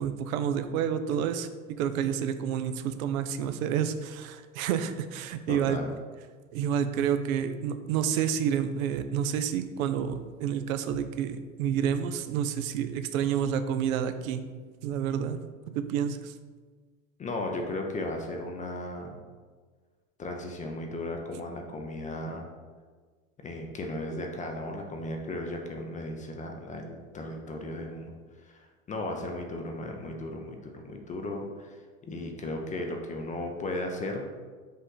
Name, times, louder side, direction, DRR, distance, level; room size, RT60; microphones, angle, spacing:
voice 1, 0.0-1.5 1.8-5.8 6.5-14.4 14.8-15.4 15.7-16.3, right 8 dB, 70° right, 10 dB, 0.5 m, -29 dB
voice 2, 5.5-5.9 17.2-19.2 20.2-22.5 23.4-28.1 28.4-34.3, left 1 dB, 20° left, 2 dB, 0.4 m, -36 dB
5.4 x 2.5 x 3.8 m, 1.5 s
hypercardioid pair, 90°, 42 cm